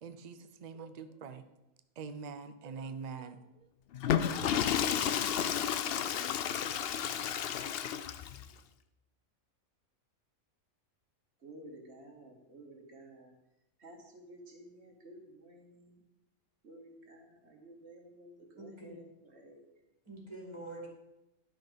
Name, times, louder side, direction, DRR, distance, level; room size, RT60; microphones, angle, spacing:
voice 1, 0.0-1.5 2.0-3.7, right 5 dB, 85° right, 9 dB, 0.3 m, -44 dB
Water / Toilet flush, 3.9-8.4, left 9 dB, 65° left, 0.6 m, -32 dB
voice 2, 11.4-13.4 13.8-16.0 16.6-19.7 20.5-20.6, right 1 dB, 50° right, 2 dB, 1.5 m, -53 dB
voice 3, 18.6-19.0 20.1-20.9, right 2 dB, 20° right, -1 dB, 2.1 m, -45 dB
10.5 x 5.9 x 5.1 m, 0.94 s
omnidirectional pair, 1.5 m